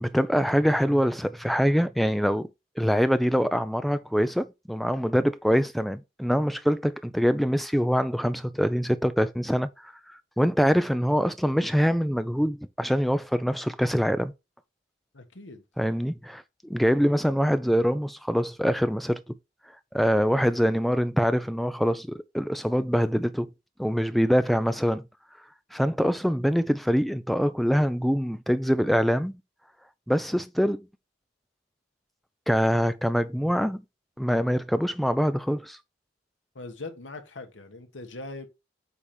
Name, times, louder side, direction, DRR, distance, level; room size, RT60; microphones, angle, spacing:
voice 1, 0.0-2.5 2.8-9.9 10.4-14.3 15.8-19.4 19.9-23.5 23.8-25.0 25.7-29.4 30.1-30.9 32.5-33.8 34.2-35.8, equal, ahead, 0.4 m, -24 dB
voice 2, 15.1-15.6 36.5-38.5, left 2 dB, 80° left, 1.3 m, -41 dB
8.3 x 2.9 x 5.0 m
head